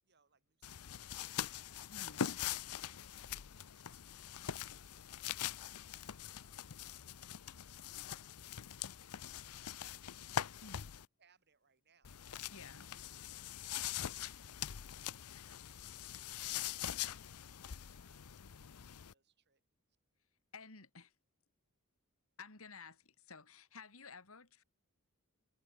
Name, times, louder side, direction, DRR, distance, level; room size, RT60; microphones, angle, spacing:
voice 1, 0.0-1.5 2.0-7.2 7.5-10.8 11.2-13.0 13.3-19.6, right 6 dB, 50° right, 7.3 m, -77 dB
sound 1, 0.6-11.1 12.0-19.1, left 10 dB, 85° left, 0.7 m, -43 dB
voice 2, 1.9-2.2 10.6-10.9 12.5-12.9 20.5-21.2 22.4-24.6, left 4 dB, 65° left, 2.8 m, -53 dB
open air
head